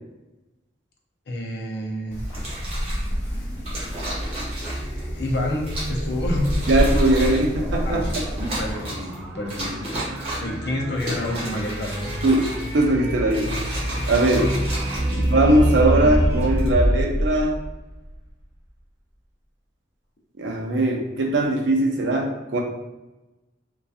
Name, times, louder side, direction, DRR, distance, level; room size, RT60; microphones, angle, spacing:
voice 1, 1.3-2.2 4.8-6.6 7.9-8.0 8.6-10.1 10.3-12.2 14.2-14.6 15.1-15.4, left 1 dB, 65° left, 0 dB, 0.5 m, -29 dB
Wind, 2.1-8.7, equal, 40° left, 1.0 m, -28 dB
sound 1, 2.2-18.3, equal, 10° right, 0.8 m, -28 dB
sound 2, 2.3-3.1 3.6-5.0 5.6-6.0 6.4-7.5 8.0-9.1 9.5-10.6 10.9-12.8 13.2-15.7 16.4-16.7, right 1 dB, 35° right, 0.8 m, -33 dB
voice 2, 6.7-8.0 12.2-13.5 14.1-14.4 15.1-17.6 20.4-22.6, right 1 dB, 85° right, 1 dB, 0.5 m, -20 dB
2.7 x 2.2 x 2.3 m, 1.0 s
head